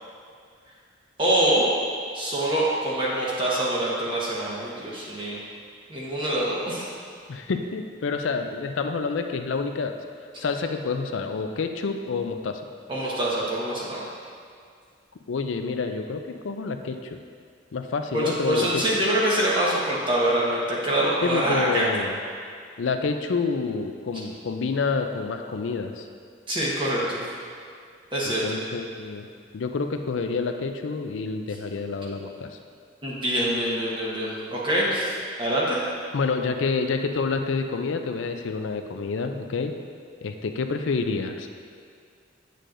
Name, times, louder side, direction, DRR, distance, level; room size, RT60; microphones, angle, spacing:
voice 1, 1.2-1.7 2.1-5.4 5.9-6.9 12.9-14.1 18.1-21.9 26.5-27.2 28.1-28.6 33.0-35.8, right 1 dB, 25° right, -6 dB, 1.2 m, -25 dB
voice 2, 7.3-9.9 10.4-12.6 15.3-17.2 17.7-18.7 21.2-22.2 22.8-26.1 28.2-29.3 29.5-32.5 36.1-39.7 40.2-41.5, left 4 dB, 80° left, 6 dB, 0.4 m, -28 dB
9.0 x 6.6 x 2.6 m, 2.2 s
head